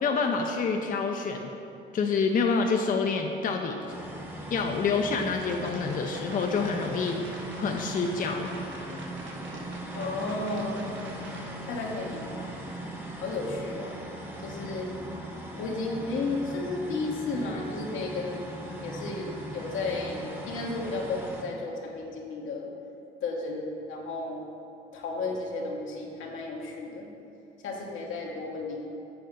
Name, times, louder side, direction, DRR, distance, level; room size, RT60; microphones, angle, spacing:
voice 1, 0.0-1.5 1.9-3.9 4.5-7.2 7.6-8.5, left 4 dB, 45° left, 3 dB, 0.5 m, -27 dB
sound 1, 3.9-21.4, right 1 dB, 10° right, 1.0 m, -39 dB
sound 2, 5.4-11.5, right 2 dB, 70° right, 1.0 m, -46 dB
voice 2, 9.9-10.9 11.7-12.6 13.2-13.9 14.4-14.9 15.6-18.4 18.8-22.7 23.2-24.4 24.9-27.1 27.6-28.9, left 3 dB, 80° left, -1 dB, 1.2 m, -33 dB
7.8 x 4.2 x 5.2 m, 2.8 s
cardioid pair, 90°, 20 cm